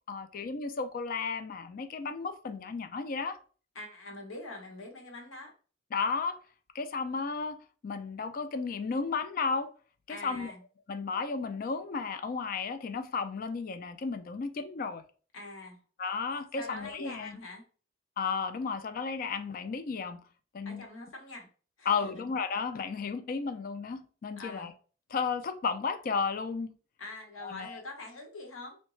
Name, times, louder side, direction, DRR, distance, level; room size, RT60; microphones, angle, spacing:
voice 1, 0.1-3.4 5.9-6.4 6.7-9.7 10.1-10.5 10.9-15.0 16.0-17.4 18.2-20.2 20.5-20.8 21.9-24.7 25.1-26.7 27.4-27.8, left 5 dB, 45° left, 0.3 m, -33 dB
voice 2, 3.7-5.5 10.1-10.6 15.3-15.8 16.6-17.6 20.6-21.5 21.8-22.2 24.4-24.7 27.0-28.8, left 2 dB, 80° left, 1.0 m, -44 dB
3.6 x 2.2 x 3.1 m
head